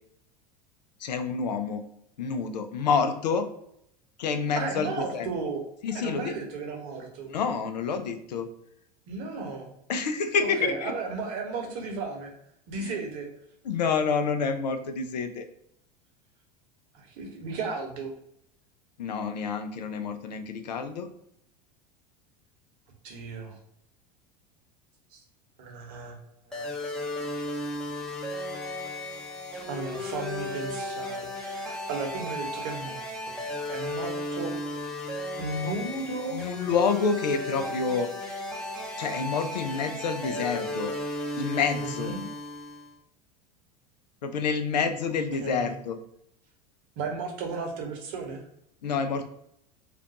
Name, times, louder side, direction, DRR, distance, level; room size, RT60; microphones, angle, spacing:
voice 1, 1.0-1.8 2.2-3.5 4.2-5.3 5.8-6.3 7.2-8.5 9.9-10.9 12.8-13.0 13.6-15.5 19.0-21.1 36.3-38.5 39.0-40.9 41.4-42.1 44.2-46.0 48.8-49.3, left 5 dB, 85° left, 8 dB, 0.4 m, -28 dB
voice 2, 4.5-5.6 5.9-7.3 9.1-9.7 10.4-12.3 12.7-13.3 16.9-18.1 23.0-23.6 25.1-25.2 25.6-26.2 26.5-26.7 27.2-27.3 29.7-33.4 33.7-34.5 35.4-36.4 41.7-42.2 45.4-45.8 47.0-48.4, right 4 dB, 60° right, 1 dB, 1.0 m, -34 dB
sound 1, 26.5-42.9, left 1 dB, 5° left, 0.6 m, -35 dB
2.5 x 2.2 x 3.8 m, 0.75 s
hypercardioid pair, 90°, 21 cm